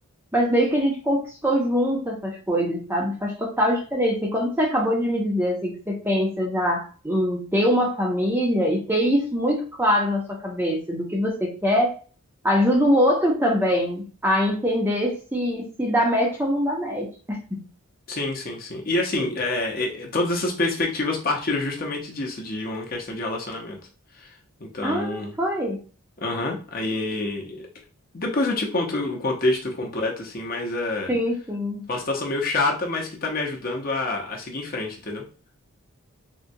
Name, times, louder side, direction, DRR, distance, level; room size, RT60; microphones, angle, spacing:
voice 1, 0.3-11.9 12.4-17.6 24.8-25.8 31.1-31.8, equal, 10° right, -1 dB, 0.5 m, -23 dB
voice 2, 18.1-23.8 24.1-25.3 26.2-27.7 28.1-31.1 31.9-35.2, left 2 dB, 40° left, 1 dB, 0.7 m, -27 dB
3.7 x 2.1 x 2.6 m, 0.37 s
head